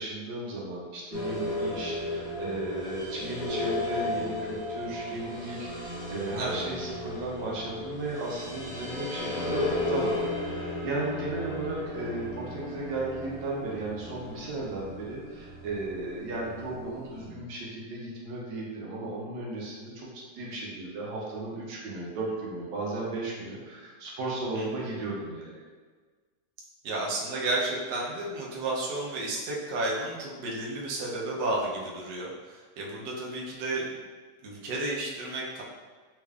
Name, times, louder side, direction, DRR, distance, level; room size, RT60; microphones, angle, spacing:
voice 1, 0.0-25.6, right 2 dB, 90° right, -4 dB, 1.4 m, -35 dB
sound 1, 1.1-17.3, left 2 dB, 65° left, 1.4 m, -35 dB
voice 2, 26.8-33.9 34.4-35.6, right 2 dB, 75° right, -4 dB, 1.2 m, -32 dB
3.6 x 3.3 x 2.3 m, 1.4 s
omnidirectional pair, 1.9 m